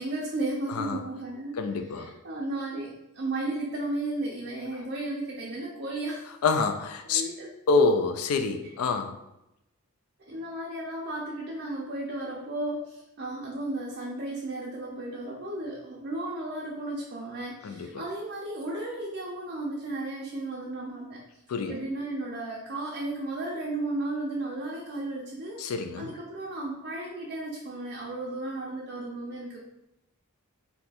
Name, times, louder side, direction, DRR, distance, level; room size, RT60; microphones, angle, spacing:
voice 1, 0.0-1.6 1.9-6.3 7.0-7.5 10.2-21.2 21.7-29.6, right 2 dB, 50° right, -3 dB, 0.5 m, -34 dB
voice 2, 1.6-2.1 6.4-7.2 7.7-9.2 17.6-17.9 21.5-21.7 25.6-26.1, left 4 dB, 80° left, 8 dB, 0.4 m, -26 dB
2.7 x 2.3 x 4.0 m, 0.88 s
head